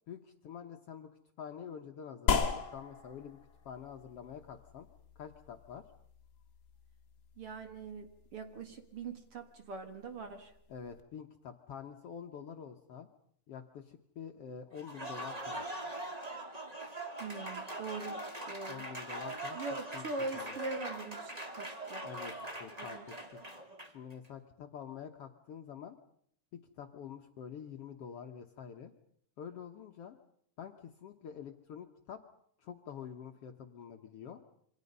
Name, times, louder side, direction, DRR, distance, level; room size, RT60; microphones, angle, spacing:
voice 1, 0.1-1.1 1.4-3.4 3.6-4.9 5.1-5.9 10.7-13.1 13.5-15.7 18.7-20.0 20.3-20.6 22.0-23.4 23.9-25.9 26.8-28.9 29.4-30.2 30.6-32.2 32.6-34.4, left 7 dB, 60° left, 5 dB, 1.7 m, -47 dB
sound 1, 2.3-11.0, left 6 dB, 35° left, 1.9 m, -39 dB
voice 2, 7.4-10.5 17.2-18.9 19.5-22.0 22.8-23.1, right 3 dB, 50° right, 7 dB, 2.4 m, -42 dB
Applause, 14.7-24.1, right 1 dB, 15° right, 1.6 m, -42 dB
27.5 x 25.0 x 5.4 m, 0.68 s
omnidirectional pair, 3.7 m